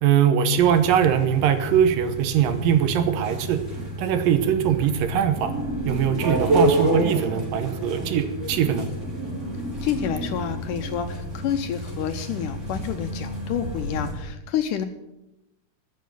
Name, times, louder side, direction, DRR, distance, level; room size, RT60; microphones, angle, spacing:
voice 1, 0.0-3.6 4.0-5.5 5.9-8.9, right 9 dB, 70° right, 9 dB, 2.6 m, -21 dB
sound 1, 0.5-14.1, right 1 dB, 20° right, 5.3 m, -29 dB
voice 2, 9.8-14.9, left 9 dB, 75° left, 8 dB, 2.0 m, -28 dB
14.0 x 7.4 x 9.2 m, 0.91 s
omnidirectional pair, 4.3 m